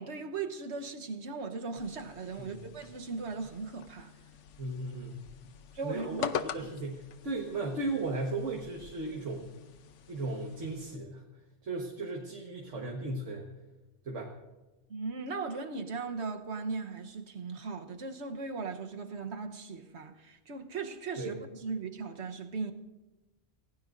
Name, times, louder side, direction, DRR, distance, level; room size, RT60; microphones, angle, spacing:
voice 1, 0.0-4.1 5.7-6.3 14.9-22.7, right 4 dB, 70° right, 1.3 m, -38 dB
sound 1, 1.8-11.0, left 8 dB, 85° left, 1.1 m, -44 dB
voice 2, 4.6-5.2 5.8-9.5 10.1-11.2 11.6-13.5 14.0-14.3 21.2-21.4, right 2 dB, 90° right, 1.8 m, -36 dB
28.0 x 17.0 x 2.6 m
omnidirectional pair, 1.2 m